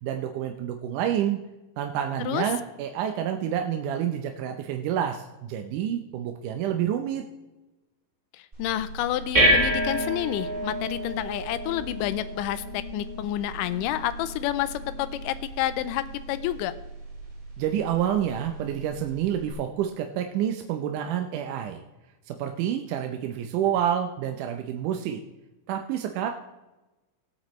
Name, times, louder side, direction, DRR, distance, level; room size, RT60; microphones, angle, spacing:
voice 1, 0.0-1.4 1.8-7.2 17.6-21.8 22.3-25.2 25.7-26.3, right 10 dB, 75° right, 4 dB, 2.0 m, -28 dB
voice 2, 8.3-16.7, left 13 dB, 80° left, 13 dB, 2.1 m, -29 dB
sound 1, 8.5-19.5, equal, 15° right, 2.6 m, -30 dB
19.0 x 8.7 x 3.1 m, 1.1 s
omnidirectional pair, 4.1 m